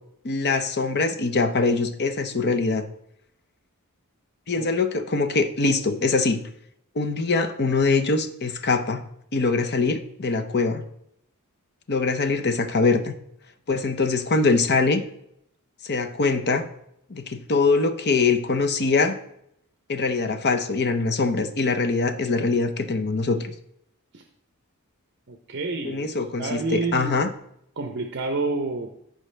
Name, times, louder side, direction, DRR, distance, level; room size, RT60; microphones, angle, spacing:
voice 1, 0.2-2.9 4.5-6.4 6.9-9.0 9.3-10.8 11.9-13.1 13.7-15.0 15.8-16.6 17.1-19.2 19.9-23.5 25.8-27.3, left 3 dB, 50° left, 8 dB, 0.8 m, -23 dB
voice 2, 25.3-26.0 26.4-27.3 27.8-28.9, right 3 dB, 55° right, 4 dB, 0.8 m, -29 dB
14.0 x 5.2 x 3.3 m, 0.74 s
head